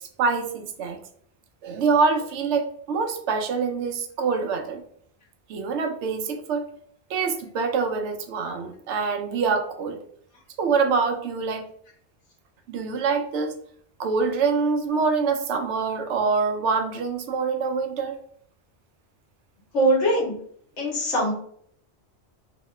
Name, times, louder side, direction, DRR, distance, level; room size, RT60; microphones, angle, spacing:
voice 1, 0.2-1.0 1.6-4.8 5.5-6.7 7.1-10.0 10.6-11.7 12.7-13.5 14.0-18.2, right 5 dB, 90° right, 6 dB, 0.9 m, -25 dB
voice 2, 19.7-20.3 20.8-21.3, right 1 dB, 85° left, -3 dB, 1.5 m, -21 dB
3.0 x 2.8 x 3.1 m, 0.64 s
omnidirectional pair, 1.2 m